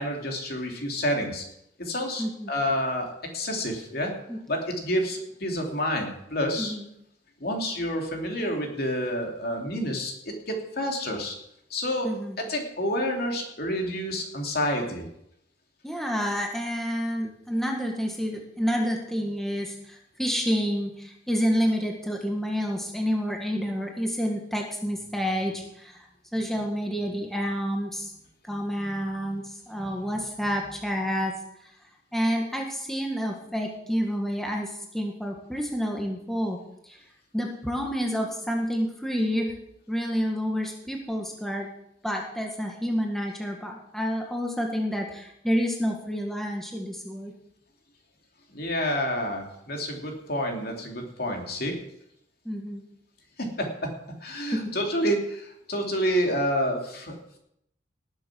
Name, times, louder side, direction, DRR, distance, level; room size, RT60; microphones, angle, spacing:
voice 1, 0.0-1.4 1.8-3.1 3.3-4.1 4.5-6.7 7.4-11.4 11.7-12.1 12.5-15.1 48.5-51.8 53.4-53.7 54.2-57.1, equal, 55° left, 2 dB, 2.9 m, -28 dB
voice 2, 2.2-2.5 4.3-4.4 6.6-6.8 12.0-12.4 15.8-26.0 26.3-28.1 28.4-31.3 32.1-36.6 36.8-37.0 37.3-39.5 39.9-41.7 42.0-47.3 52.4-52.8 54.5-54.7, equal, ahead, 0 dB, 1.6 m, -29 dB
19.0 x 7.6 x 6.1 m, 0.78 s
head